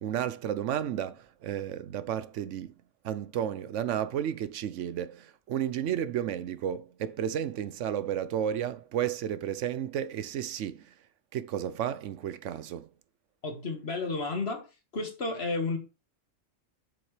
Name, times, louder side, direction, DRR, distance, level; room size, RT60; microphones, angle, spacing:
voice 1, 0.0-2.7 3.0-10.9 11.3-12.9, right 10 dB, 75° right, 0.9 m, -32 dB
voice 2, 13.4-14.7 14.9-15.8, left 3 dB, 55° left, 1.9 m, -32 dB
7.8 x 7.2 x 3.2 m
omnidirectional pair, 1.3 m